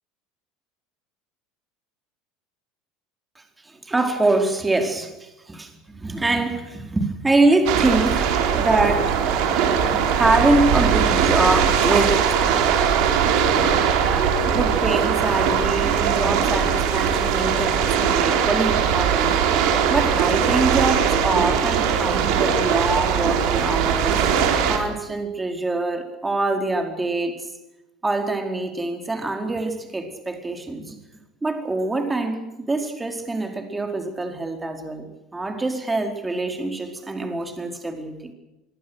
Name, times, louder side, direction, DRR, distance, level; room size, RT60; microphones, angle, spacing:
voice 1, 3.6-9.2 9.7-9.8 10.1-12.6 14.5-19.4 19.9-24.2 24.7-27.5 28.0-31.0 31.4-38.3, right 2 dB, 15° right, 5 dB, 4.6 m, -24 dB
sound 1, 7.7-24.8, right 7 dB, 60° right, 4.4 m, -20 dB
25.0 x 22.0 x 6.5 m, 1.0 s
figure-of-eight pair, 70°, 0 cm